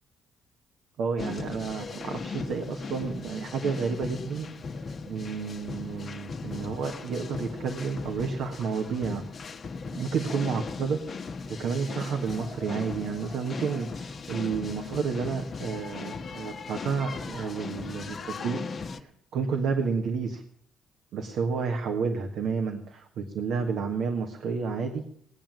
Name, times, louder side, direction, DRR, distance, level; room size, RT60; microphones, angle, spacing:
voice 1, 1.0-4.5 5.1-9.2 9.9-11.0 11.5-18.6 19.0-20.4 21.1-25.0, right 5 dB, 65° right, 3 dB, 1.6 m, -30 dB
sound 1, 1.2-19.0, left 4 dB, 45° left, 1.2 m, -38 dB
19.5 x 9.0 x 7.3 m, 0.64 s
hypercardioid pair, 45°, 0 cm